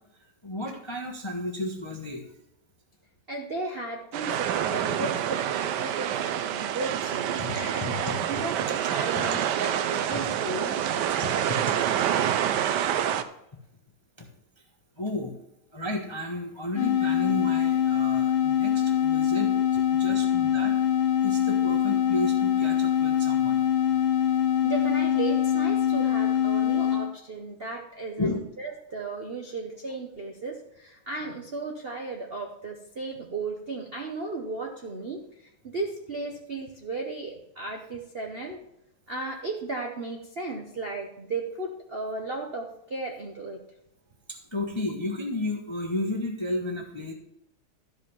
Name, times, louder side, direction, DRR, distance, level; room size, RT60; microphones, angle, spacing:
voice 1, 0.4-2.2 7.4-8.4 9.1-9.3 10.1-10.2 11.2-11.8 14.2-14.3 15.0-15.3 15.7-20.7 21.2-23.6 26.8-26.9 28.2-28.4 44.3-47.1, left 1 dB, 20° left, 2 dB, 0.7 m, -33 dB
voice 2, 3.3-11.2 24.6-38.6 39.1-43.6, right 3 dB, 50° right, 2 dB, 0.7 m, -35 dB
sound 1, 4.1-13.2, right 10 dB, 70° right, 1.0 m, -27 dB
sound 2, 16.8-27.1, left 10 dB, 80° left, 1.5 m, -24 dB
12.5 x 5.3 x 5.4 m, 0.82 s
omnidirectional pair, 2.3 m